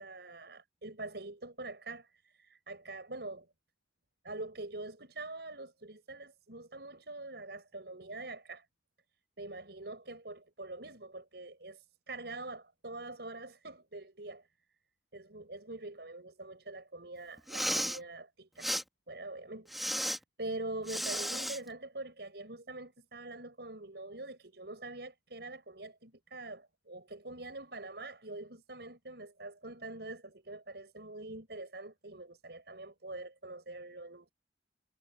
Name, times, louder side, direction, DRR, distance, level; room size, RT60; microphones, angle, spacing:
voice 1, 0.0-2.1 2.4-3.5 4.2-8.6 9.4-14.4 15.1-18.7 19.1-20.0 20.4-34.3, right 2 dB, 65° right, 6.4 m, -44 dB
Respiratory sounds, 17.4-18.0 18.6-18.8 19.7-20.2 20.9-21.6, equal, ahead, 2.9 m, -33 dB
head